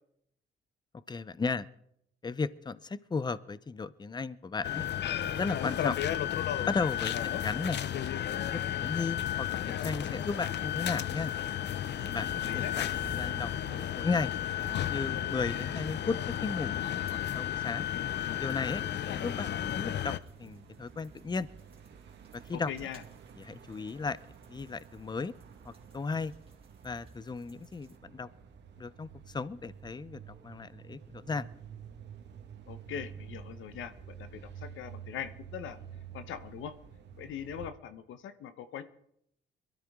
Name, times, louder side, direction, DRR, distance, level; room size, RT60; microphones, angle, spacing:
voice 1, 1.1-1.7 2.2-4.9 5.2-6.0 6.7-7.1 7.4-7.8 8.3-11.3 12.1-12.3 12.5-14.3 14.9-16.2 16.4-16.8 17.1-17.9 18.4-21.5 22.3-22.7 23.4-24.2 24.5-25.3 25.6-26.3 26.8-28.3 28.8-31.5, left 4 dB, 20° left, 17 dB, 0.6 m, -35 dB
sound 1, 4.6-20.2, left 11 dB, 60° left, 0.7 m, -33 dB
sound 2, 10.4-28.0, right 2 dB, 30° right, 2.3 m, -54 dB
voice 2, 12.4-12.7 22.5-23.0 32.7-35.8 36.1-36.8 37.2-38.8, left 9 dB, 80° left, 11 dB, 1.0 m, -41 dB
sound 3, 17.7-37.7, right 7 dB, 60° right, 1.7 m, -50 dB
22.5 x 13.0 x 3.7 m, 0.74 s
cardioid pair, 90°, 20 cm